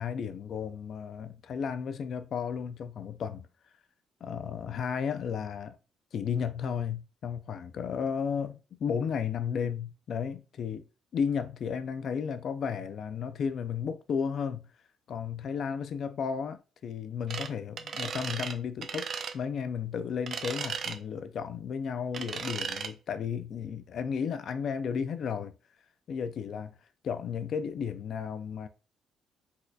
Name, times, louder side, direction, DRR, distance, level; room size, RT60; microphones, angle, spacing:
voice 1, 0.0-3.5 4.2-5.8 6.1-10.9 11.1-14.6 15.1-25.5 26.1-26.7 27.0-28.7, left 7 dB, 65° left, 0.3 m, -33 dB
sound 1, 17.3-17.5 17.8-18.6 18.8-19.3 20.3-21.0 22.1-22.9, right 6 dB, 60° right, 0.4 m, -35 dB
4.1 x 2.6 x 2.3 m
cardioid pair, 90°, 0 cm